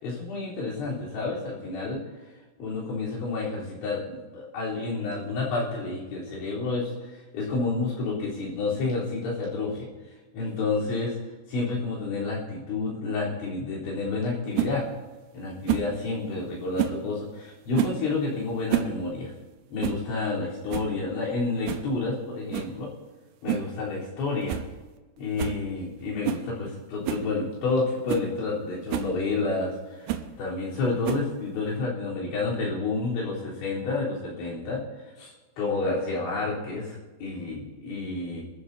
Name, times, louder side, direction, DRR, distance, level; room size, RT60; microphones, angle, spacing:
voice 1, 0.0-2.0 2.6-6.9 7.3-9.9 10.3-11.1 11.5-14.8 15.3-19.3 19.7-22.9 23.4-24.6 25.2-30.1 30.4-34.8 35.2-35.3 35.6-38.4, left 3 dB, 70° left, -6 dB, 6.4 m, -29 dB
sound 1, 14.5-14.7 15.7-15.9 16.8-17.0 17.7-18.0 18.5-19.0 19.2-19.3 19.8-20.0 20.4-20.5 20.7-21.0 21.7-21.9 22.5-22.7 23.5-23.7 24.1-24.2 24.5-24.7 25.0-25.1 25.4-25.6 26.2-26.5 27.0-27.3 27.8-27.9 28.1-28.3 28.9-29.1 30.1-30.3 31.0-31.4, right 11 dB, 80° right, 2.4 m, -29 dB
26.5 x 13.5 x 2.9 m, 1.2 s
omnidirectional pair, 5.5 m